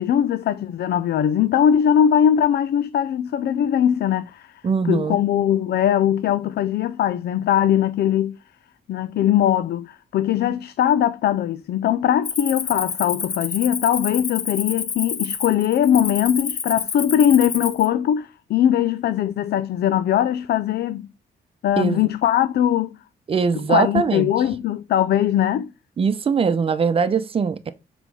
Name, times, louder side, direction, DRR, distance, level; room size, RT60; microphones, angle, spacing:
voice 1, 0.0-4.6 4.9-8.4 8.9-21.1 21.6-23.0 23.5-25.7, left 10 dB, 80° left, 0.5 m, -20 dB
voice 2, 4.6-5.2 21.8-22.1 23.3-24.3 26.0-27.7, right 5 dB, 35° right, 0.8 m, -21 dB
Cricket, 12.2-17.9, left 6 dB, 45° left, 1.4 m, -29 dB
7.5 x 5.1 x 4.8 m
wide cardioid pair, 170°, 17 cm